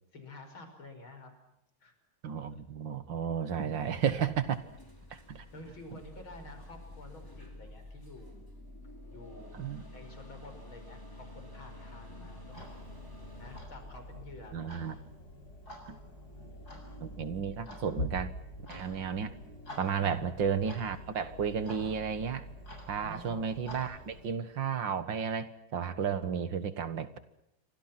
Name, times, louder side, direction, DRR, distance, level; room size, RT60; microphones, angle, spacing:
voice 1, 0.1-1.3 1.8-1.9 2.6-2.7 4.6-4.8 5.1-5.3 5.5-8.5 9.1-9.5 9.8-12.7 13.4-15.0 16.3-16.8 20.0-20.4 23.0-23.5, left 2 dB, 75° left, 6 dB, 6.4 m, -50 dB
voice 2, 2.2-4.6 5.1-5.5 9.5-9.8 14.5-15.0 15.9-16.0 17.0-18.3 18.7-19.3 19.8-22.4 22.9-27.2, right 7 dB, 65° right, 13 dB, 2.2 m, -33 dB
sound 1, 3.8-13.6, left 1 dB, 10° left, 4.5 m, -53 dB
sound 2, 6.0-14.0, left 1 dB, 15° right, 3.6 m, -50 dB
Clock, 12.5-24.3, left 1 dB, 45° left, 7.8 m, -45 dB
29.0 x 25.0 x 6.0 m, 0.81 s
omnidirectional pair, 2.2 m